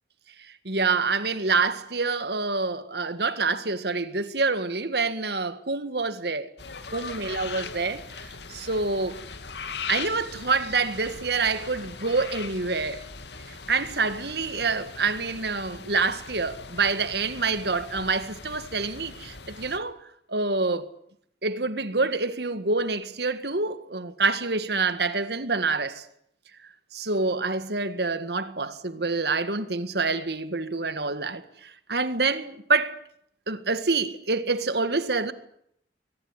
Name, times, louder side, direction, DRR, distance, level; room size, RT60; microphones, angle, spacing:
voice 1, 0.7-6.5 6.9-9.2 9.9-13.0 13.7-20.0 20.3-20.9 21.4-26.1 26.9-33.0 33.5-35.3, right 4 dB, 65° right, 1.8 m, -27 dB
sound 1, 6.6-19.8, left 5 dB, 75° left, 2.2 m, -40 dB
23.0 x 19.5 x 9.9 m
head